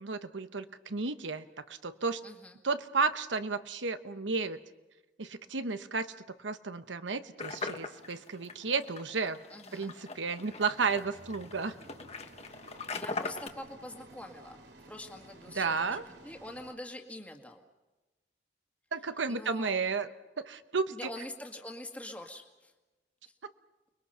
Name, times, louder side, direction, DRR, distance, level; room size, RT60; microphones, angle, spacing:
voice 1, 0.0-2.2 2.6-4.6 5.2-9.4 9.7-11.7 15.5-16.0 18.9-21.0, right 4 dB, 90° right, 11 dB, 1.1 m, -33 dB
voice 2, 2.2-2.5 9.5-9.9 12.9-14.6 14.9-17.6 19.3-19.8 20.9-22.7, left 1 dB, 10° left, 2 dB, 1.9 m, -45 dB
sound 1, 7.4-13.5, left 3 dB, 35° left, 1.3 m, -41 dB
sound 2, 10.4-16.7, right 2 dB, 65° right, 2.6 m, -54 dB
29.5 x 21.5 x 5.7 m, 1.1 s
head